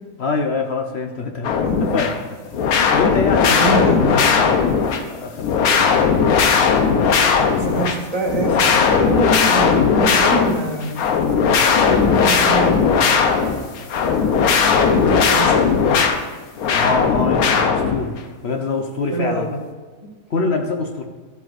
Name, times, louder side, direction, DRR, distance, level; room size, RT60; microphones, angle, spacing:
voice 1, 0.2-1.6 1.9-2.2 2.4-2.5 2.9-3.8 4.3-5.7 16.7-18.2 18.4-19.5 20.3-21.0, left 3 dB, 55° left, 3 dB, 0.8 m, -24 dB
sound 1, 1.4-2.2 2.5-5.0 5.4-8.0 8.2-16.2 16.6-18.2, left 6 dB, 75° left, 1.2 m, -17 dB
voice 2, 3.6-4.2 7.6-11.0 11.9-13.7 14.9-15.9 19.1-19.5, right 2 dB, 25° right, -2 dB, 1.7 m, -25 dB
13.0 x 7.7 x 2.5 m, 1.4 s
omnidirectional pair, 1.6 m